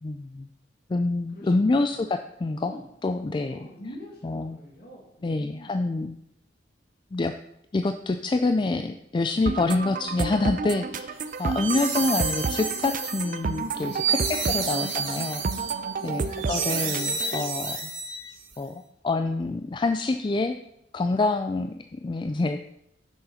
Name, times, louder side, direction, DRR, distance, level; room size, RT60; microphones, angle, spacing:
voice 1, 0.0-0.5 0.9-2.7 3.0-3.6 4.2-4.6 5.2-6.2 7.1-7.3 7.7-15.4 16.0-16.2 16.5-17.9 18.6-20.6 20.9-22.6, left 3 dB, 25° left, 7 dB, 0.3 m, -27 dB
voice 2, 1.3-2.0 2.6-2.9 3.5-5.9 11.5-11.8 14.0-14.8 16.0-16.7, left 1 dB, 55° left, -1 dB, 2.2 m, -45 dB
sound 1, 9.5-17.4, right 4 dB, 45° right, 0.5 m, -31 dB
sound 2, 11.3-18.5, right 5 dB, 80° right, 2.4 m, -30 dB
6.8 x 6.4 x 5.6 m, 0.77 s
head